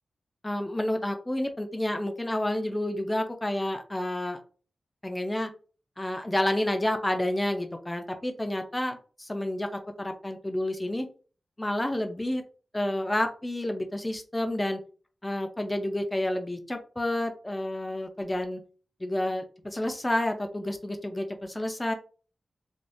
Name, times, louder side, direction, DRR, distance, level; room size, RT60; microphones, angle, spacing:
voice 1, 0.4-4.4 5.0-5.5 6.0-9.7 10.0-11.1 11.6-12.4 12.7-14.8 15.2-18.6 19.0-21.9, left 1 dB, 15° left, 6 dB, 0.4 m, -29 dB
3.4 x 2.3 x 2.6 m, 0.39 s
wide cardioid pair, 140°, 0 cm